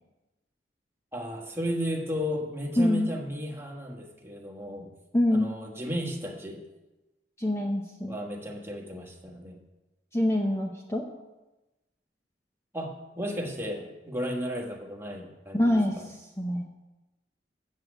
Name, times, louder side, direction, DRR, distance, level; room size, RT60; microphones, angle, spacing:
voice 1, 1.1-4.9 5.3-6.6 8.1-9.6 12.7-16.1, equal, 15° right, 0 dB, 1.5 m, -34 dB
voice 2, 2.8-3.2 5.1-5.5 7.4-8.2 10.1-11.0 15.5-16.7, left 1 dB, 15° left, 1 dB, 0.8 m, -25 dB
7.6 x 7.5 x 8.0 m, 1.1 s
head